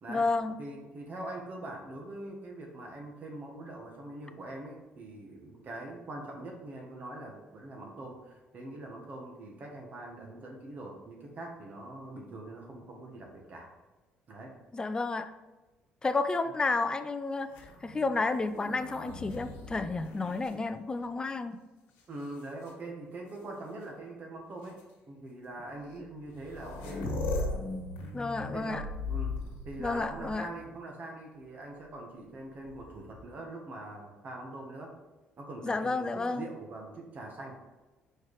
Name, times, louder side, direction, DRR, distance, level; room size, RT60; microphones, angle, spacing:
voice 1, 0.1-0.6 14.7-15.3 16.0-17.5 17.8-21.6 28.1-28.8 29.8-30.5 35.6-36.5, left 3 dB, 25° left, 10 dB, 0.5 m, -31 dB
voice 2, 0.6-13.7 14.3-14.6 22.1-24.8 25.1-27.1 28.4-34.9 35.4-37.5, right 2 dB, 50° right, 0 dB, 1.3 m, -43 dB
sound 1, 17.4-21.3 22.0-22.7 23.8-23.9 24.6-24.8 25.9-26.0 26.2-30.7 32.6-33.3, left 2 dB, 90° left, 1.4 m, -39 dB
4.6 x 4.5 x 4.8 m, 1.1 s
supercardioid pair, 85°, 4 cm